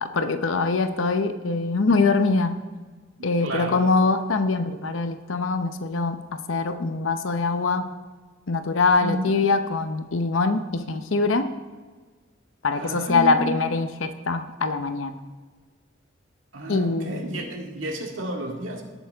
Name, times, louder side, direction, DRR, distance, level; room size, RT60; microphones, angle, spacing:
voice 1, 0.0-2.6 3.2-7.9 8.5-11.5 12.6-15.2 16.7-17.4, left 3 dB, 90° left, 8 dB, 0.7 m, -23 dB
voice 2, 3.2-3.8 9.0-9.3 12.8-13.5 16.5-18.8, right 1 dB, 90° right, 0 dB, 2.0 m, -31 dB
18.0 x 8.3 x 3.5 m, 1.4 s
head